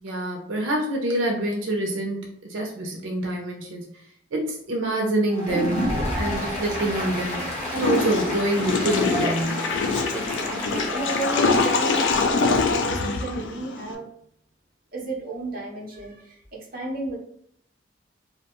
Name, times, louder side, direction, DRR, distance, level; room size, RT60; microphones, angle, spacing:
voice 1, 0.0-2.2 2.5-3.9 4.3-9.6, right 1 dB, 85° right, 0 dB, 0.5 m, -26 dB
Applause, 5.3-12.3, left 1 dB, 35° left, 0.7 m, -32 dB
sound 1, 5.5-9.5 9.8-9.9, equal, ahead, 0.5 m, -32 dB
Water / Toilet flush, 7.7-13.9, left 4 dB, 75° left, 0.3 m, -24 dB
voice 2, 10.1-14.1 14.9-17.2, right 2 dB, 45° right, -2 dB, 0.7 m, -33 dB
2.4 x 2.1 x 2.8 m, 0.68 s
head